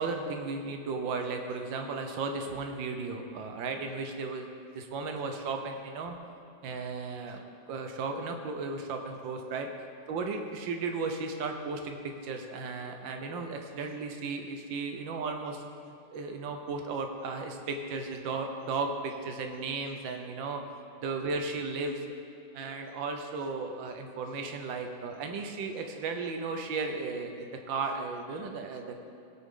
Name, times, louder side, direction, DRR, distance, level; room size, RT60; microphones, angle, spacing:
voice 1, 0.0-4.5 4.7-6.2 6.6-7.4 7.7-9.7 10.1-20.6 21.0-22.1 22.5-29.0, right 4 dB, 90° right, 4 dB, 1.6 m, -35 dB
17.5 x 6.6 x 3.7 m, 2.6 s
omnidirectional pair, 2.0 m